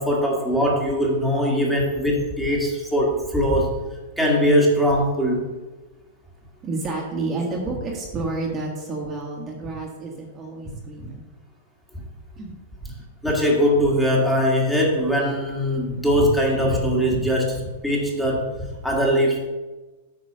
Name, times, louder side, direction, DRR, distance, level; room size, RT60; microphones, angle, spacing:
voice 1, 0.0-3.8 4.2-5.5 13.2-19.5, equal, ahead, -3 dB, 1.8 m, -21 dB
voice 2, 6.6-11.3 12.4-12.6 17.1-17.2, right 3 dB, 20° right, -1 dB, 1.5 m, -30 dB
8.6 x 4.4 x 6.6 m, 1.2 s
supercardioid pair, 150°, 0 cm